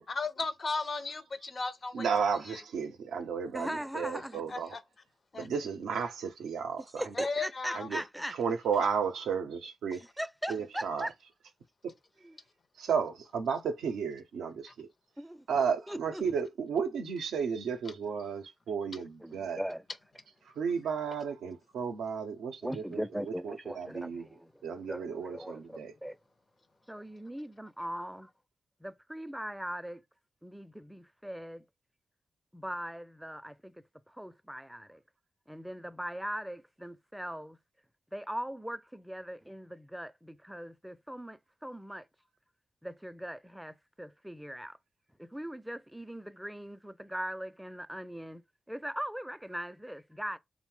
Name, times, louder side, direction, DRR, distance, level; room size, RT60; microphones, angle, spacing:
voice 1, 0.1-2.1 4.5-4.8 5.3-5.5 7.2-7.9 18.9-19.0, left 4 dB, 55° left, 0.5 m, -35 dB
voice 2, 1.9-4.8 5.3-7.1 7.7-8.0 8.3-10.0 10.5-11.1 11.8-11.9 12.8-14.9 15.5-19.6 20.4-24.3 24.6-25.9, right 6 dB, 90° right, 0.4 m, -33 dB
voice 3, 3.5-4.4 7.0-8.3 10.2-11.1 12.2-12.4 15.2-15.5 15.9-16.2 19.2-19.8 22.6-24.5 24.9-26.2 26.9-28.3 28.8-30.0 30.4-31.7 32.5-35.0 35.5-37.6 38.1-42.1 42.8-44.8 45.2-50.4, equal, 5° right, 0.3 m, -40 dB
2.7 x 2.0 x 3.1 m
supercardioid pair, 45°, 0 cm